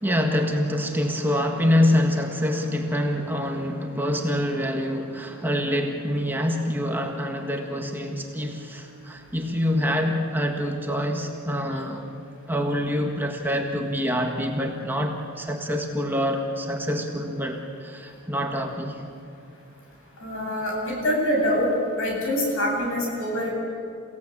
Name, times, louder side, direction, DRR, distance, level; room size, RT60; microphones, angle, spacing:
voice 1, 0.0-12.1 12.5-19.0, equal, 10° right, 2 dB, 1.6 m, -26 dB
voice 2, 20.2-21.7 22.0-23.5, equal, 65° left, -1 dB, 7.9 m, -25 dB
29.5 x 17.0 x 8.7 m, 2.6 s
head